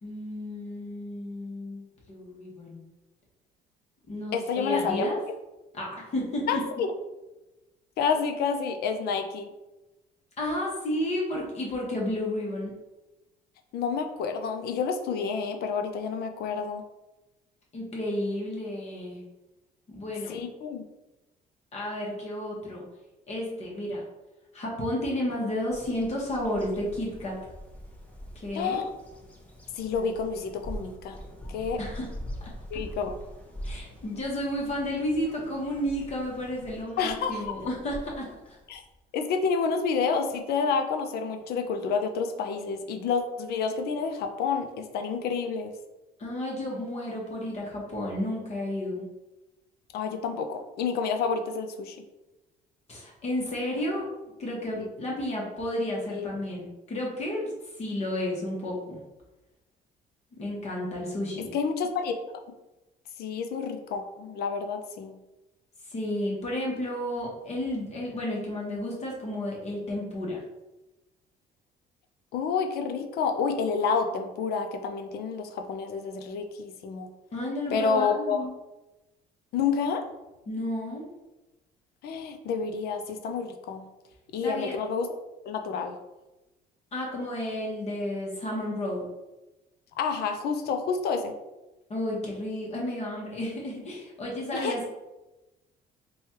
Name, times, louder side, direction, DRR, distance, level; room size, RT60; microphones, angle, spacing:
voice 1, 0.0-2.8 4.1-5.2 5.7-6.6 10.4-12.7 17.7-19.2 19.9-20.4 21.7-22.9 23.3-24.1 24.5-27.4 28.3-28.8 31.8-32.1 33.6-38.3 46.2-49.1 52.9-54.1 54.4-57.5 57.8-59.0 60.4-61.5 65.9-70.4 77.3-78.5 80.5-81.1 84.4-84.7 86.9-89.0 91.9-94.9, left 1 dB, 40° left, -3 dB, 1.0 m, -32 dB
voice 2, 4.3-5.1 6.5-6.9 8.0-9.5 13.7-16.8 20.3-20.8 28.5-28.9 29.8-31.2 31.5-31.8 32.7-33.2 37.0-37.4 38.7-38.8 39.1-45.7 49.9-52.0 54.8-54.9 56.1-56.3 61.5-62.2 63.2-65.2 72.3-77.1 77.7-78.5 79.5-80.0 82.0-83.8 84.3-85.1 85.5-86.0 90.0-91.3 94.5-94.8, left 5 dB, 70° left, 5 dB, 0.5 m, -29 dB
Bird vocalization bird call bird song, 25.7-39.0, equal, 10° left, 0.7 m, -43 dB
3.2 x 2.3 x 4.2 m, 1.0 s
cardioid pair, 110°, 17 cm